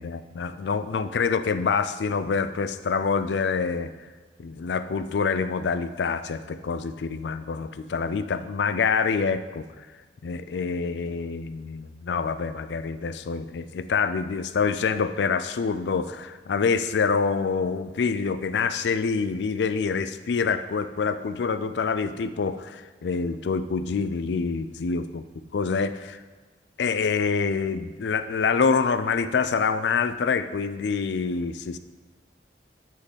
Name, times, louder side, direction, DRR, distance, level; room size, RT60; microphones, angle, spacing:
voice 1, 0.0-3.9 4.4-9.9 10.2-25.2 25.5-26.2 26.8-31.8, left 5 dB, 80° left, 12 dB, 0.4 m, -26 dB
9.7 x 3.9 x 4.1 m, 1.4 s
head